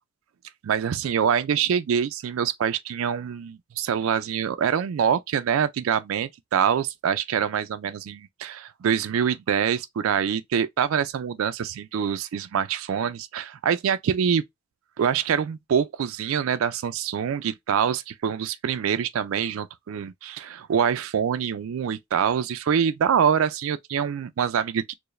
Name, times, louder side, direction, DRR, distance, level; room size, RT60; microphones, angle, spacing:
voice 1, 0.6-14.4 15.0-24.9, right 7 dB, 85° right, 0.4 m, -25 dB
4.6 x 2.1 x 3.1 m
head